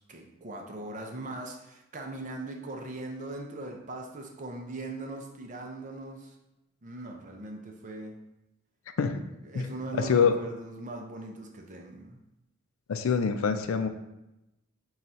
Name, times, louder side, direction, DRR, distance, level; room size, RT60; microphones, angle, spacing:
voice 1, 0.0-6.4 6.8-8.2 9.4-12.2, right 2 dB, 35° right, 2 dB, 0.5 m, -40 dB
voice 2, 10.0-10.4 12.9-13.9, left 6 dB, 80° left, 8 dB, 0.4 m, -25 dB
3.9 x 2.4 x 4.2 m, 0.92 s
head